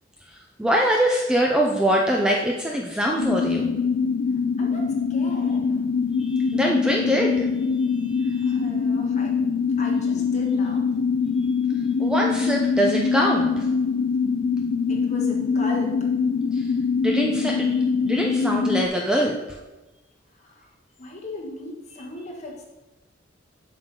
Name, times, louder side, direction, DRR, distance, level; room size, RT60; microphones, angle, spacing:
voice 1, 0.3-3.7 6.2-7.5 7.8-8.6 12.0-13.7 16.5-16.7 17.0-19.6, equal, 5° right, -1 dB, 0.5 m, -24 dB
sound 1, 3.2-18.9, left 5 dB, 65° left, 0.3 m, -23 dB
voice 2, 4.6-5.9 8.3-10.8 14.9-16.1 20.3-22.7, equal, 35° left, -2 dB, 1.6 m, -38 dB
7.4 x 6.3 x 3.7 m, 1.1 s
head